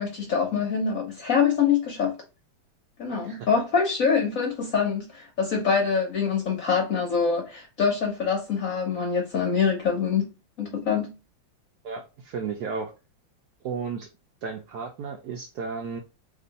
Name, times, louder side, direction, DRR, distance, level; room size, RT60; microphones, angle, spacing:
voice 1, 0.0-2.2 3.0-11.2, left 6 dB, 60° left, 0.9 m, -25 dB
voice 2, 11.8-12.9 13.6-14.1 14.4-16.0, right 5 dB, 75° right, 0.9 m, -33 dB
3.0 x 2.5 x 3.9 m
omnidirectional pair, 2.1 m